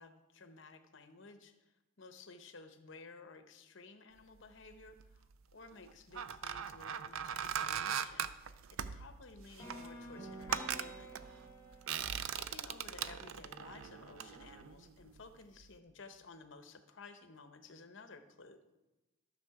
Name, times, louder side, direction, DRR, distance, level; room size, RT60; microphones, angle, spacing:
voice 1, 0.0-5.3 5.5-11.1 12.2-18.6, left 3 dB, 60° left, 8 dB, 0.8 m, -55 dB
sound 1, 4.6-5.2 5.8-15.3 15.6-15.8, right 8 dB, 70° right, 0.4 m, -40 dB
sound 2, 9.6-13.6, right 1 dB, 10° left, 3.1 m, -50 dB
13.0 x 6.4 x 4.8 m, 1.0 s
head